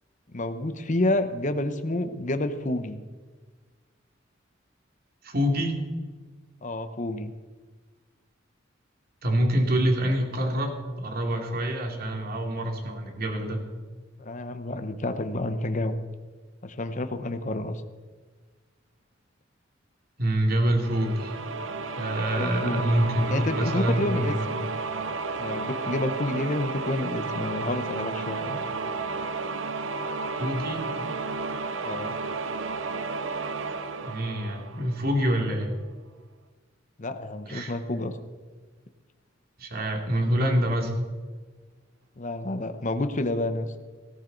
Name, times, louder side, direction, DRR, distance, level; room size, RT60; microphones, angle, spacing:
voice 1, 0.3-3.0 6.6-7.3 14.2-16.0 16.6-17.8 22.4-22.9 23.3-24.7 25.4-28.6 31.8-32.2 37.0-38.1 42.2-43.7, left 1 dB, 40° left, 9 dB, 1.0 m, -29 dB
voice 2, 5.2-5.8 9.2-13.6 20.2-21.3 21.9-24.4 30.4-30.9 34.0-35.7 37.5-37.7 39.6-40.9, equal, 50° right, 2 dB, 2.6 m, -26 dB
sound 1, 20.8-35.4, right 4 dB, 85° right, 0.8 m, -32 dB
17.5 x 13.5 x 4.0 m, 1.4 s
head